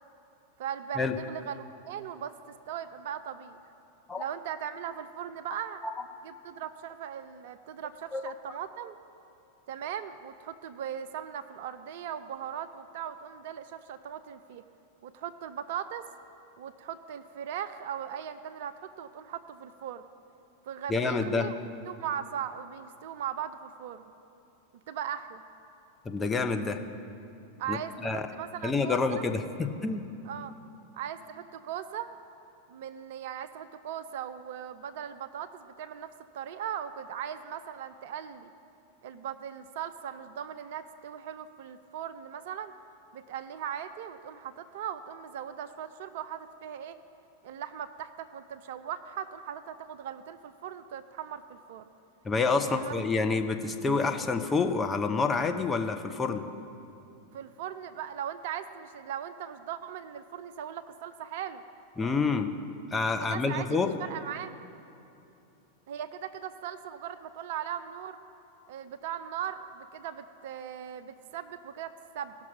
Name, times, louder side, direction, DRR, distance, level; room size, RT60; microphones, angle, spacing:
voice 1, 0.6-2.3 2.7-3.6 4.2-5.8 6.2-9.0 9.7-14.6 15.0-16.1 16.6-20.0 20.6-21.6 21.9-24.0 24.9-25.4 27.6-29.3 30.2-30.5 31.0-32.1 32.7-38.5 39.0-42.7 43.1-47.0 47.4-51.9 52.6-53.0 57.3-61.6 63.2-64.5 65.9-68.2 68.7-72.4, right 9 dB, 50° right, 12 dB, 0.4 m, -39 dB
voice 2, 20.9-21.5 26.0-26.8 27.7-28.3 28.6-30.0 52.2-56.4 62.0-62.5 62.9-63.9, left 4 dB, 15° left, 5 dB, 0.7 m, -28 dB
17.0 x 6.0 x 5.8 m, 2.8 s
figure-of-eight pair, 90°, 0 cm